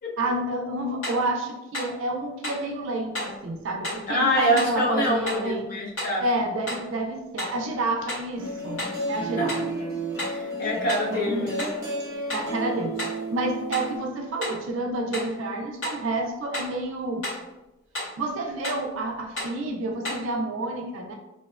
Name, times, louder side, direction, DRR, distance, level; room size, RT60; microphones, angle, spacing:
voice 1, 0.2-5.7 6.2-8.8 9.1-9.5 11.1-11.5 12.3-17.3 18.2-21.1, right 2 dB, 70° right, 2 dB, 0.3 m, -29 dB
sound 1, 1.0-1.3 1.7-2.0 2.4-2.7 3.1-3.4 3.8-4.1 4.6-4.8 5.3-5.5 6.0-6.2 6.7-6.9 7.4-7.6 8.1-8.3 8.8-9.0 9.5-9.7 10.2-10.4 10.9-11.1 11.6-11.8 12.3-12.5 13.0-13.2 13.7-13.9 14.4-14.6 15.1-15.4 15.8-16.0 16.5-16.8 17.2-17.5 17.9-18.2 18.6-18.9 19.4-19.6 20.0-20.3, left 1 dB, 75° left, 1.5 m, -33 dB
voice 2, 4.1-6.3 9.0-9.7 10.2-11.6, equal, 45° left, -3 dB, 0.6 m, -26 dB
sound 2, 8.4-14.0, right 2 dB, 15° right, 0.7 m, -32 dB
2.5 x 2.1 x 2.3 m, 0.96 s
head